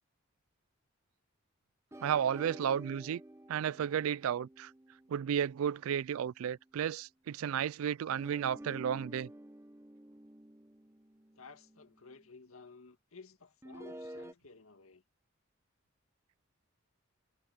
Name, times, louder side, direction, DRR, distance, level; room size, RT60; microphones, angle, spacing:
sound 1, 1.9-6.5 8.1-12.3 13.6-14.3, right 1 dB, 10° right, 0.8 m, -51 dB
voice 1, 2.0-3.2 3.5-4.7 5.1-9.3, right 8 dB, 75° right, 0.3 m, -33 dB
voice 2, 11.4-15.0, left 4 dB, 80° left, 1.9 m, -54 dB
head